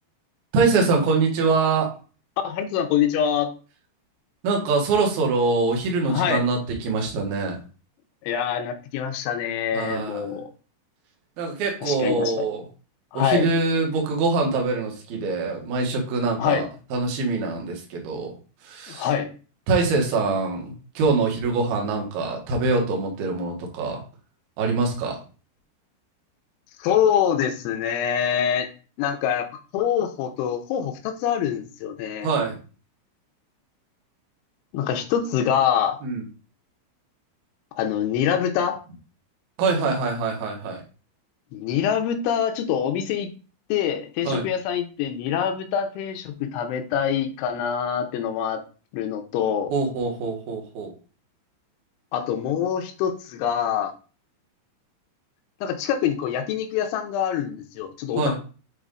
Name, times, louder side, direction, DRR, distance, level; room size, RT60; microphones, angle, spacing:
voice 1, 0.5-1.9 4.4-7.6 9.7-10.2 11.4-12.6 13.1-18.3 18.6-19.1 19.7-24.0 24.6-25.2 32.2-32.5 36.0-36.2 39.6-40.8 44.2-44.4 49.7-50.9 58.2-58.4, right 3 dB, 60° right, 1 dB, 3.0 m, -24 dB
voice 2, 2.4-3.5 6.1-6.4 8.2-10.5 11.8-12.5 13.1-13.5 16.4-16.7 18.9-19.3 26.8-28.7 29.0-29.5 29.7-32.3 34.7-36.0 37.8-38.8 41.5-43.3 43.7-48.6 48.9-49.7 52.1-53.9 55.6-58.4, left 8 dB, 85° left, 6 dB, 3.0 m, -25 dB
8.3 x 4.1 x 3.8 m, 0.37 s
omnidirectional pair, 5.7 m